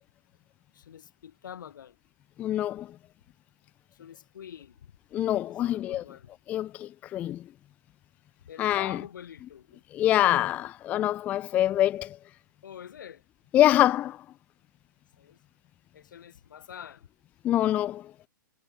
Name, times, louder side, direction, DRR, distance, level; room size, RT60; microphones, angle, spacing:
voice 1, 0.7-2.0 4.0-4.9 5.4-6.3 8.5-9.8 12.6-13.2 15.2-15.4 15.9-17.1, left 9 dB, 70° left, 7.5 m, -45 dB
voice 2, 2.4-3.0 5.1-6.0 6.5-7.4 8.6-9.0 9.9-12.2 13.5-14.2 17.4-18.1, left 13 dB, 15° left, 0.4 m, -25 dB
hypercardioid pair, 160°, 11 cm